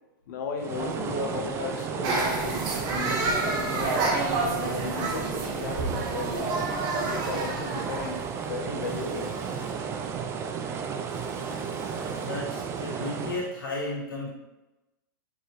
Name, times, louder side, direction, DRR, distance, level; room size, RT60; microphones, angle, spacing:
voice 1, 0.3-4.0 4.5-6.5 7.0-9.3, left 4 dB, 60° left, 4 dB, 0.7 m, -35 dB
sound 1, 0.6-13.5, right 6 dB, 25° right, 0.3 m, -33 dB
sound 2, 2.0-8.9, right 3 dB, 40° right, 0.9 m, -29 dB
sound 3, 3.1-3.3 4.9-5.4 6.9-7.8 8.8-9.9 11.1-12.3, equal, 15° left, 1.3 m, -45 dB
voice 2, 12.1-14.3, left 2 dB, 85° left, -5 dB, 1.5 m, -34 dB
4.8 x 2.8 x 3.1 m, 1.0 s
hypercardioid pair, 120°, 11 cm